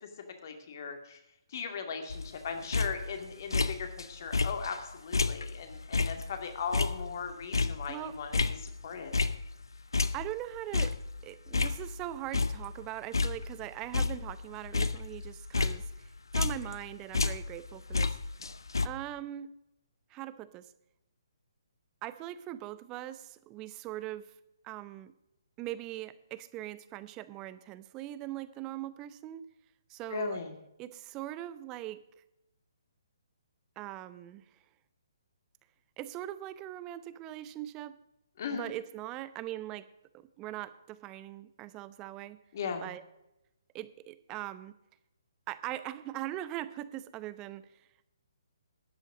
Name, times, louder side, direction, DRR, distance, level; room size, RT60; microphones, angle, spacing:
voice 1, 0.4-1.2 1.5-9.1 30.1-30.5 38.4-38.7 42.5-42.9, left 5 dB, 50° left, 6 dB, 2.3 m, -38 dB
Descaling Espresso Maker, 2.1-4.1 4.3-9.6 9.9-12.1 12.3-12.9 13.1-16.8 17.1-18.9, left 3 dB, 75° left, 0.7 m, -31 dB
voice 2, 10.1-11.0 11.2-18.2 18.8-19.5 20.1-20.7 22.0-24.3 24.6-25.1 25.6-29.5 29.9-30.4 30.8-32.0 33.8-34.4 36.0-38.0 38.5-39.8 40.1-42.4 42.8-43.0 43.7-44.8 45.5-47.7, right 14 dB, 20° right, 15 dB, 0.7 m, -41 dB
13.0 x 9.7 x 5.0 m, 0.88 s
figure-of-eight pair, 135°, 2 cm